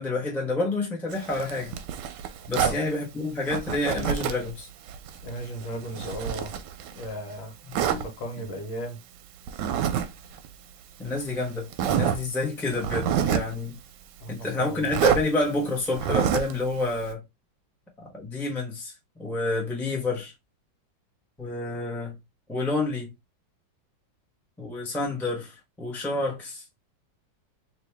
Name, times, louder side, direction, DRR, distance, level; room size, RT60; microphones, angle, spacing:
voice 1, 0.0-1.7 2.5-4.7 7.7-8.0 11.0-13.8 14.3-17.2 18.1-18.9 19.2-20.3 21.4-22.2 22.5-23.1 24.6-26.6, left 2 dB, ahead, 0.7 m, -29 dB
Zipper (clothing), 1.1-2.8 3.5-4.5 4.9-7.1 7.7-8.0 9.5-10.1 10.3-10.5 11.2-11.3 11.7-12.2 12.7-13.5 14.9-15.2 15.9-16.6, right 9 dB, 75° right, 1.1 m, -27 dB
voice 2, 5.2-6.5 7.0-9.0 14.2-14.9, equal, 80° left, 1.7 m, -36 dB
3.0 x 3.0 x 3.2 m
omnidirectional pair, 2.1 m